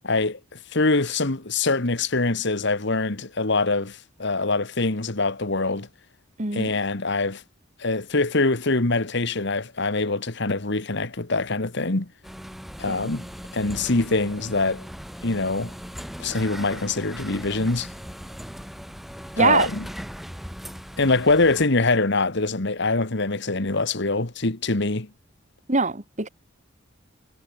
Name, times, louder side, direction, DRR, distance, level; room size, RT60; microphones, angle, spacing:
voice 1, 0.0-5.9 6.5-7.4 7.8-12.1 12.8-13.2 13.5-14.8 15.2-15.7 16.2-17.9 19.4-19.9 21.0-25.1, left 3 dB, 60° left, 1.7 m, -24 dB
voice 2, 6.4-6.7 12.9-13.1 19.4-19.7 25.7-26.3, right 4 dB, 35° right, 2.6 m, -23 dB
sound 1, 12.2-21.7, equal, ahead, 2.4 m, -39 dB
head